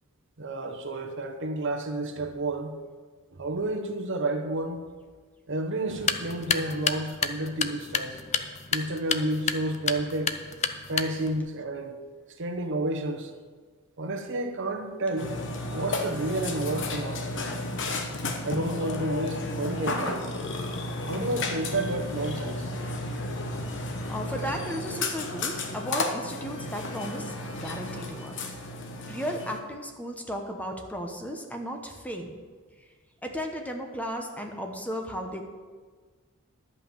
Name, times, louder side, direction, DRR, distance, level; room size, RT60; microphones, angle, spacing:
voice 1, 0.4-2.7 3.3-4.8 5.5-8.2 8.7-10.4 10.9-12.0 12.4-13.3 14.0-15.4 15.7-17.5 18.4-20.3 21.1-22.7, right 2 dB, 60° right, 6 dB, 0.9 m, -30 dB
sound 1, 5.9-11.4, left 6 dB, 30° left, 0.5 m, -31 dB
Burping eructation, 15.2-29.6, left 2 dB, 60° left, 1.1 m, -33 dB
voice 2, 24.1-28.3 29.1-32.4 33.2-35.4, equal, 5° left, 3 dB, 0.9 m, -35 dB
11.5 x 5.5 x 7.3 m, 1.5 s
head